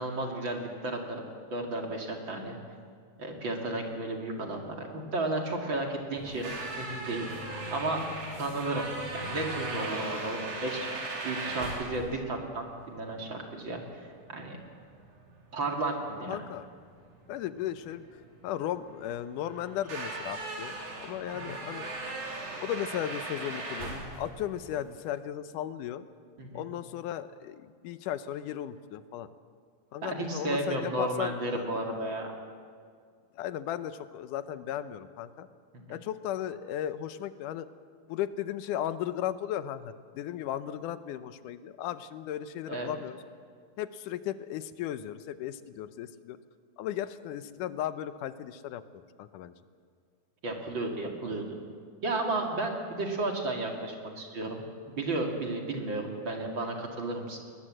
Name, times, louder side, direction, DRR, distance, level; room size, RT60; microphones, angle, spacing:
voice 1, 0.0-2.6 3.2-7.3 7.7-8.0 8.4-10.9 11.2-14.1 14.3-14.6 15.5-16.4 21.4-21.5 26.4-26.6 30.0-32.3 35.7-36.0 42.7-42.9 50.4-51.4 52.0-57.4, right 2 dB, 40° right, 1 dB, 2.8 m, -33 dB
sound 1, 6.2-25.1, right 2 dB, 65° right, 4.8 m, -39 dB
voice 2, 16.3-16.7 17.3-21.9 22.6-26.0 26.5-29.3 29.9-31.7 33.4-35.5 35.9-37.7 38.1-43.2 43.8-46.4 46.8-48.8 49.2-49.5, left 11 dB, 85° left, 12 dB, 2.3 m, -36 dB
21.0 x 21.0 x 7.7 m, 2.1 s
omnidirectional pair, 3.6 m